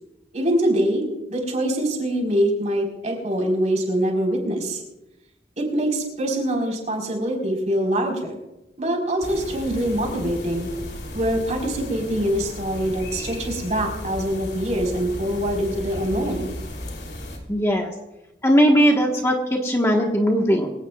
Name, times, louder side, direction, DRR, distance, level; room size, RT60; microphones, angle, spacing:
voice 1, 0.3-4.8 5.6-8.4 8.8-10.7 11.1-16.5, right 1 dB, 40° right, 1 dB, 4.4 m, -24 dB
sound 1, 9.2-17.4, left 1 dB, 65° left, 3.2 m, -35 dB
voice 2, 17.5-17.9 18.4-20.7, equal, 15° left, 0 dB, 1.4 m, -19 dB
24.0 x 17.5 x 2.4 m, 0.96 s
head